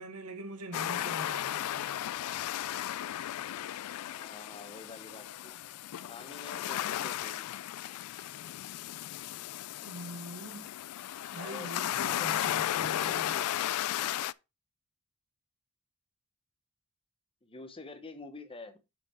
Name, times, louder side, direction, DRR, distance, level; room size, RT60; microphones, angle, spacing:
voice 1, 0.0-2.0 9.8-10.7 11.3-13.4, right 2 dB, 80° right, 1.4 m, -43 dB
sound 1, 0.7-14.3, left 12 dB, 75° left, 0.3 m, -35 dB
voice 2, 4.1-5.6 6.0-7.5 11.4-12.5 13.0-13.5 17.4-18.8, left 3 dB, 25° left, 0.9 m, -47 dB
6.7 x 5.9 x 4.2 m
head